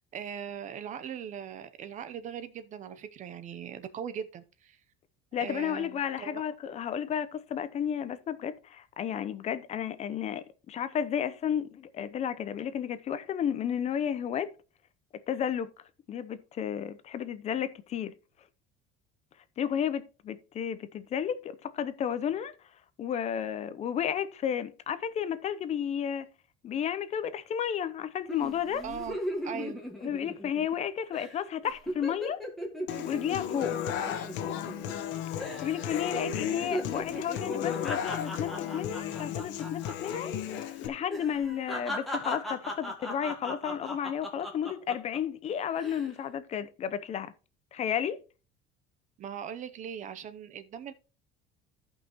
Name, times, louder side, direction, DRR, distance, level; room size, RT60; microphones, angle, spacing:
voice 1, 0.0-4.8 5.4-6.4 28.8-29.2 29.4-29.8 49.2-50.9, right 8 dB, 35° right, 0.7 m, -40 dB
voice 2, 5.3-14.5 15.3-15.7 16.1-18.1 19.6-22.5 23.0-26.3 26.6-28.8 30.0-32.4 33.0-33.8 35.6-40.3 40.8-47.3 47.7-48.2, left 8 dB, 30° left, 0.7 m, -32 dB
sound 1, 28.3-30.8 31.1-31.3 31.6-35.1 35.4-35.8 36.1-40.2 40.4-40.6 41.1-45.2 45.7-46.1, equal, ahead, 1.6 m, -38 dB
Human voice / Acoustic guitar, 32.9-40.9, left 9 dB, 65° left, 1.2 m, -34 dB
14.0 x 5.5 x 2.9 m
cardioid pair, 160°, 21 cm